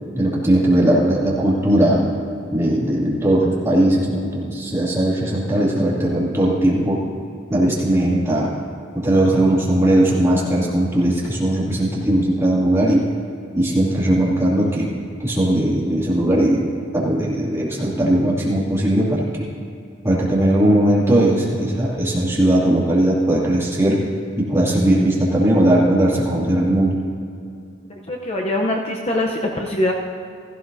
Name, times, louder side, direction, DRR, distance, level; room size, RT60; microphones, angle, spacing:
voice 1, 0.1-2.1 2.5-7.0 7.5-8.5 8.9-13.0 13.5-14.9 15.2-19.5 20.0-24.0 24.4-27.0, right 1 dB, 15° right, -6 dB, 2.5 m, -18 dB
voice 2, 27.9-29.9, left 1 dB, 30° left, 0 dB, 0.7 m, -23 dB
16.0 x 15.0 x 2.7 m, 2.4 s
head